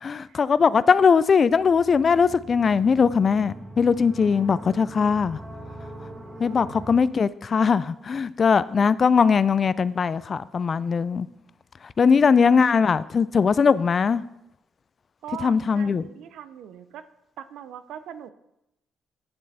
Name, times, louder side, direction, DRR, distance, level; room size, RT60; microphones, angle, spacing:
voice 1, 0.0-5.4 6.4-11.3 12.0-14.2 15.4-16.0, left 5 dB, 45° left, 0.4 m, -20 dB
sound 1, 1.5-7.0, right 1 dB, 20° right, 1.5 m, -41 dB
voice 2, 12.0-12.5 15.2-17.0 17.4-18.3, right 9 dB, 80° right, 0.6 m, -41 dB
8.8 x 7.5 x 4.1 m
cardioid pair, 90°, 0 cm